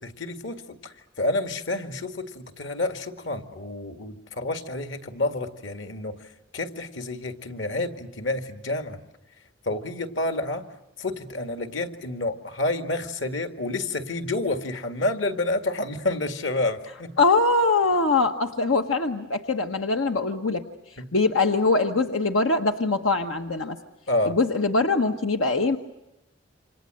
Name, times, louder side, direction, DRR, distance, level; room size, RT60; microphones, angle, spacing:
voice 1, 0.0-9.0 9.6-10.7 11.0-17.2 21.0-21.1 24.1-24.4, left 2 dB, 65° left, 8 dB, 2.1 m, -29 dB
voice 2, 17.2-20.6 21.1-23.8 24.2-25.8, left 3 dB, 90° left, 6 dB, 1.3 m, -22 dB
28.5 x 26.5 x 7.8 m, 0.92 s
head